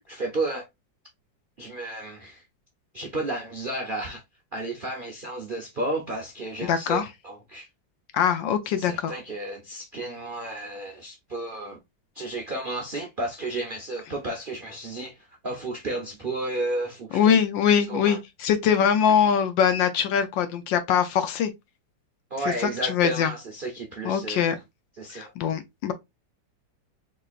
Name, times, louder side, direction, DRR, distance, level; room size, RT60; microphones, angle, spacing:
voice 1, 0.1-0.7 1.6-2.4 2.9-4.2 4.5-7.7 8.7-11.8 12.1-17.4 17.9-18.2 22.3-24.6 25.0-25.3, right 2 dB, 65° right, 0.5 m, -32 dB
voice 2, 6.6-7.0 8.1-9.1 17.1-21.5 22.6-23.3 24.0-24.6 25.1-25.9, left 8 dB, 80° left, 1.4 m, -22 dB
4.1 x 3.2 x 2.4 m
omnidirectional pair, 2.0 m